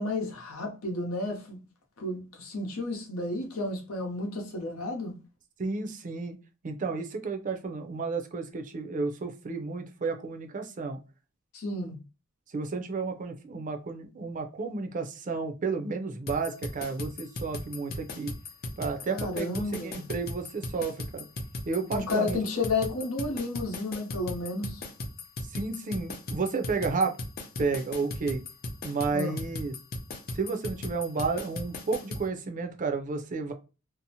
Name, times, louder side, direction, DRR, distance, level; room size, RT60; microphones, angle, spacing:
voice 1, 0.0-1.6 2.0-5.2 11.5-12.0 19.1-20.0 21.9-24.8 29.1-29.4, left 2 dB, 85° left, 0.8 m, -32 dB
voice 2, 5.6-6.3 6.6-11.0 12.5-18.3 18.8-21.2 21.7-22.4 25.5-27.2 27.6-28.4 28.8-29.7 30.3-33.5, right 4 dB, 40° right, 0.4 m, -32 dB
sound 1, 16.3-32.3, left 2 dB, 50° left, 0.5 m, -37 dB
2.6 x 2.0 x 2.7 m
head